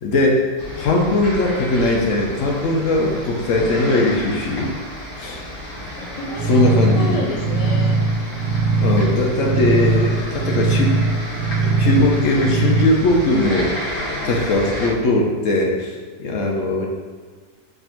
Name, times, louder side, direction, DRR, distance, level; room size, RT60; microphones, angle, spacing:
voice 1, 0.0-0.5 0.8-4.7 5.2-5.4 6.5-7.2 8.8-11.0 11.6-16.9, left 2 dB, 65° left, 0 dB, 1.0 m, -19 dB
sound 1, 0.6-14.9, equal, 85° left, 1.4 m, -31 dB
voice 2, 6.0-7.9, left 1 dB, 50° left, -1 dB, 0.4 m, -31 dB
sound 2, 6.4-12.9, right 4 dB, 65° right, 0.8 m, -20 dB
4.5 x 2.6 x 4.3 m, 1.5 s
omnidirectional pair, 1.5 m